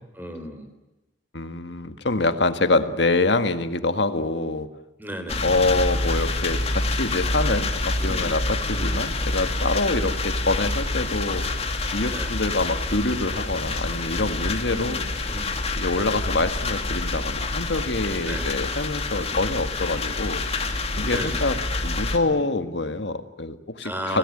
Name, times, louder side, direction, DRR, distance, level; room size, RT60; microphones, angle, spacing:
voice 1, 0.2-0.7 5.0-5.5 8.0-8.3 8.7-9.1 9.9-10.1 12.1-12.3 14.7-15.6 15.9-16.1 18.2-18.4 19.2-19.4 21.0-21.4 23.8-24.2, equal, 10° right, 7 dB, 4.2 m, -35 dB
voice 2, 1.3-4.7 5.4-11.5 11.9-15.0 15.8-20.5 21.0-24.2, left 2 dB, 70° left, 9 dB, 1.9 m, -25 dB
sound 1, 5.3-22.2, left 2 dB, 35° left, 2.4 m, -27 dB
26.5 x 18.5 x 9.9 m, 1.0 s
head